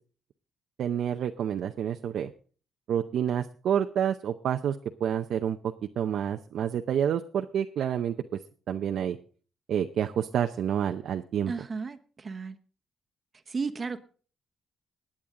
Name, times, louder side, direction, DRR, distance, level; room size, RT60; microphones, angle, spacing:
voice 1, 0.8-2.3 2.9-8.1 8.7-9.2 9.7-11.5, right 9 dB, 65° right, 5 dB, 0.6 m, -28 dB
voice 2, 11.5-12.6 13.5-14.0, right 4 dB, 30° right, 8 dB, 1.1 m, -34 dB
21.0 x 8.8 x 3.8 m, 0.41 s
cardioid pair, 135°, 0 cm